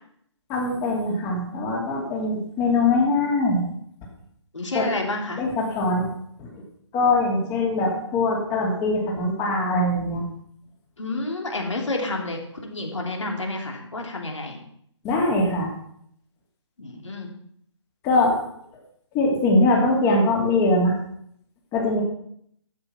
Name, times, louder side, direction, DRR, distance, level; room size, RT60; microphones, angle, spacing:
voice 1, 0.5-3.6 4.7-4.8 5.4-6.1 6.4-6.5 6.9-10.2 15.0-15.7 18.0-18.4 19.1-20.9 21.7-22.0, left 2 dB, 20° left, -1 dB, 2.7 m, -22 dB
voice 2, 4.5-5.4 11.0-14.6 16.8-17.3, left 2 dB, 75° left, 1 dB, 3.3 m, -29 dB
13.0 x 8.9 x 5.9 m, 0.68 s
figure-of-eight pair, 140°, 16 cm